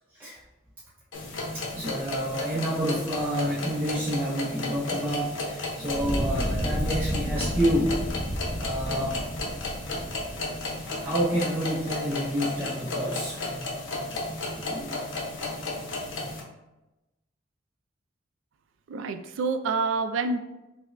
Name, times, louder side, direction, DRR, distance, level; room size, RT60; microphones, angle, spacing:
sound 1, 1.1-16.4, left 2 dB, 75° left, 0.7 m, -34 dB
voice 1, 1.5-8.1 8.6-9.2 10.8-14.1 14.5-15.0, equal, 10° right, -8 dB, 0.4 m, -29 dB
Fire, 5.8-11.0, equal, 25° left, 0.9 m, -31 dB
voice 2, 18.9-20.4, right 4 dB, 80° right, 9 dB, 0.3 m, -27 dB
4.8 x 2.1 x 2.5 m, 0.98 s
head